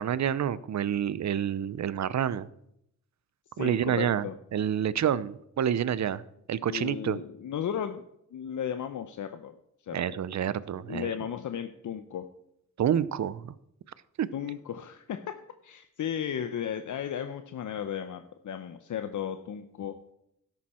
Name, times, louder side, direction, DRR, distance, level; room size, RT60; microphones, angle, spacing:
voice 1, 0.0-2.5 3.6-4.3 4.5-6.2 6.5-7.2 9.9-11.1 12.8-13.5 14.2-14.3, right 9 dB, 60° right, 18 dB, 0.7 m, -28 dB
voice 2, 3.6-4.3 6.7-8.0 8.3-9.6 9.8-10.2 10.9-12.3 14.3-15.3 15.6-20.0, left 9 dB, 70° left, 8 dB, 0.8 m, -35 dB
12.5 x 11.0 x 4.4 m, 0.77 s
cardioid pair, 80°, 32 cm